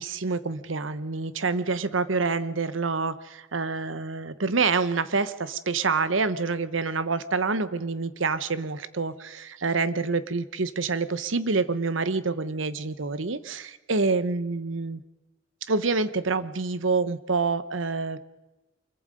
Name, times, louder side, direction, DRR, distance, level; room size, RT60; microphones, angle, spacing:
voice 1, 0.0-15.0 15.7-18.2, right 4 dB, 75° right, 14 dB, 1.0 m, -27 dB
24.5 x 22.0 x 5.2 m, 1.1 s
head